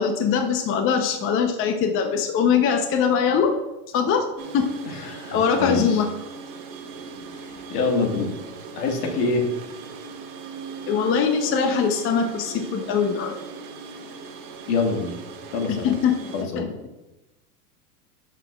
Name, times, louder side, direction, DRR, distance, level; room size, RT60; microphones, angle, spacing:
voice 1, 0.0-3.6 3.9-4.3 4.5-4.7 5.3-6.1 10.9-13.3 15.7-16.2 16.6-16.7, left 6 dB, 25° left, 5 dB, 0.7 m, -22 dB
sound 1, 4.4-16.4, right 5 dB, 40° right, 1.7 m, -39 dB
voice 2, 4.8-6.0 7.3-8.3 8.8-9.5 14.7-15.2 15.5-15.9 16.3-16.8, left 3 dB, 70° left, 2 dB, 1.9 m, -25 dB
12.0 x 5.8 x 2.3 m, 1.0 s
hypercardioid pair, 115°, 47 cm